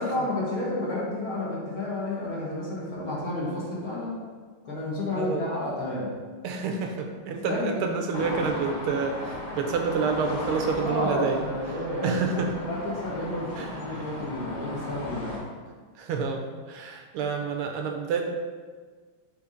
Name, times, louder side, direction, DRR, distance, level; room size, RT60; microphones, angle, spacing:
voice 1, 0.0-4.2 4.6-6.1 7.4-7.8 10.8-15.3, left 1 dB, 45° left, -6 dB, 1.7 m, -31 dB
voice 2, 6.4-11.4 12.0-12.5 13.5-14.1 16.0-18.3, right 5 dB, 85° right, 3 dB, 1.6 m, -28 dB
sound 1, 8.1-15.4, left 1 dB, 80° left, 2.9 m, -36 dB
6.0 x 3.6 x 5.0 m, 1.5 s
omnidirectional pair, 2.4 m